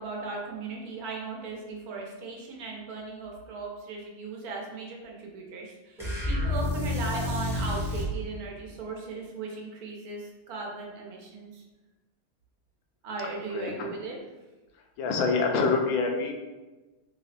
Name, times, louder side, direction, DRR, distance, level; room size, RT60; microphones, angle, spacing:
voice 1, 0.0-11.6 13.0-14.2, right 3 dB, 80° right, 0 dB, 1.2 m, -37 dB
sound 1, 6.0-8.2, left 1 dB, ahead, 0.6 m, -29 dB
voice 2, 13.5-13.9 15.0-16.3, left 4 dB, 75° left, 2 dB, 1.0 m, -26 dB
3.4 x 2.0 x 4.0 m, 1.2 s
omnidirectional pair, 1.6 m